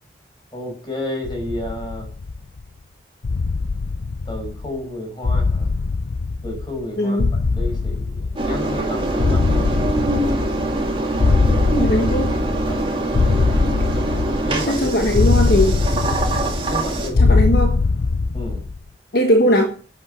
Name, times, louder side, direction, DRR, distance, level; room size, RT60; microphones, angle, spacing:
voice 1, 0.5-2.1 4.2-5.7 6.4-9.7 12.6-12.9 14.4-15.1 16.7-17.4 18.3-18.6, left 1 dB, 25° left, 1 dB, 6.4 m, -31 dB
sound 1, 1.2-2.6 3.2-4.8 5.2-6.9 7.2-8.8 9.2-10.9 11.2-12.8 13.1-14.7 15.1-16.8 17.1-18.8, left 3 dB, 90° left, 0.6 m, -21 dB
voice 2, 7.0-7.3 11.7-12.4 14.7-15.8 17.2-17.8 19.1-19.7, equal, 60° left, 4 dB, 1.5 m, -19 dB
Engine, 8.4-17.1, right 1 dB, 30° right, 2.4 m, -23 dB
11.0 x 8.5 x 6.9 m, 0.42 s
head